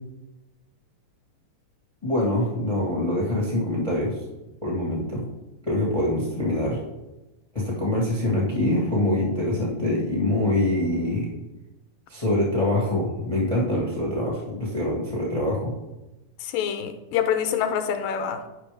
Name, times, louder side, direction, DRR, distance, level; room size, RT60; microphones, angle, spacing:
voice 1, 2.0-4.1 4.6-5.2 5.6-6.8 7.5-11.3 12.1-15.7, left 1 dB, 50° left, -3 dB, 0.4 m, -24 dB
voice 2, 16.4-18.4, left 8 dB, 85° left, 7 dB, 2.3 m, -26 dB
9.8 x 5.7 x 3.4 m, 1.0 s
omnidirectional pair, 3.9 m